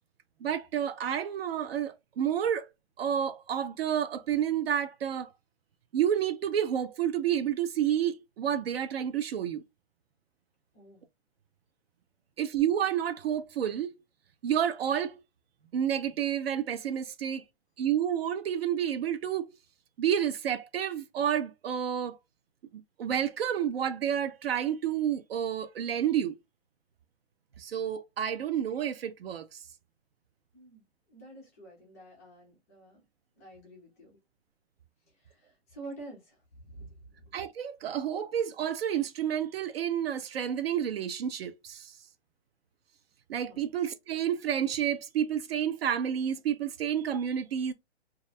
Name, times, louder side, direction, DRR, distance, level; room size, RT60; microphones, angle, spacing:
voice 1, 0.4-2.7 3.0-5.3 5.9-9.6 12.4-13.9 14.4-15.2 15.7-17.4 17.8-19.5 20.0-22.2 23.0-26.4 27.6-29.5 37.3-41.9 43.3-47.7, right 9 dB, 60° right, 0.5 m, -30 dB
voice 2, 31.1-33.0 33.4-34.2 35.1-37.3 43.5-43.6, right 2 dB, 15° left, 0.4 m, -49 dB
2.4 x 2.0 x 2.6 m
hypercardioid pair, 160°, 35 cm